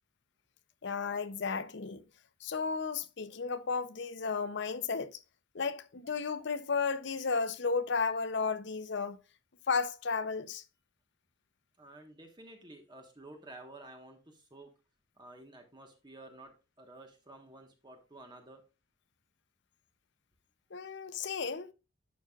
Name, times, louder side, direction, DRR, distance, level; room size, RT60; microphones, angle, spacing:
voice 1, 0.8-2.0 2.4-5.2 5.5-9.2 9.7-10.6 20.7-21.7, left 5 dB, 55° left, 0.6 m, -33 dB
voice 2, 11.8-14.7 15.2-18.6, right 2 dB, 20° right, 1.3 m, -52 dB
11.0 x 5.7 x 2.4 m
head